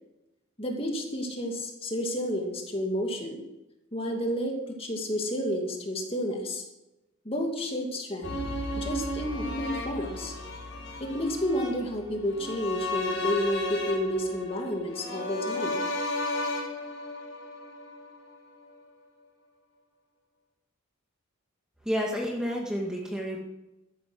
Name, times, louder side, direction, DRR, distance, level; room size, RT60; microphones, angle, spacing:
voice 1, 0.6-3.4 3.9-6.6 7.2-8.4 8.7-10.3 11.0-15.8, equal, 30° left, 2 dB, 2.4 m, -30 dB
sound 1, 8.2-18.4 18.7-18.8, left 2 dB, 65° left, 4.8 m, -34 dB
voice 2, 21.8-23.4, equal, 5° right, -1 dB, 1.9 m, -30 dB
13.5 x 11.0 x 6.2 m, 0.95 s
head